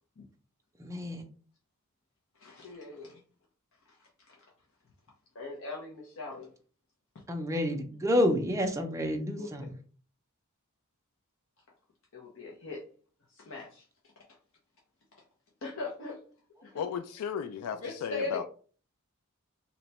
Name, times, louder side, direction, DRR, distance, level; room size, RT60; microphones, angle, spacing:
voice 1, 0.8-1.2 7.3-9.7, left 1 dB, 15° right, 0.5 m, -29 dB
voice 2, 2.4-3.2 4.3-4.4 5.3-6.5 7.1-7.2 9.4-9.5 12.1-12.8 13.4-13.8 15.6-16.2 16.6-16.9 17.7-18.4, left 3 dB, 60° left, 0.7 m, -40 dB
voice 3, 16.7-18.4, left 7 dB, 85° left, 0.3 m, -35 dB
2.9 x 2.2 x 4.0 m
head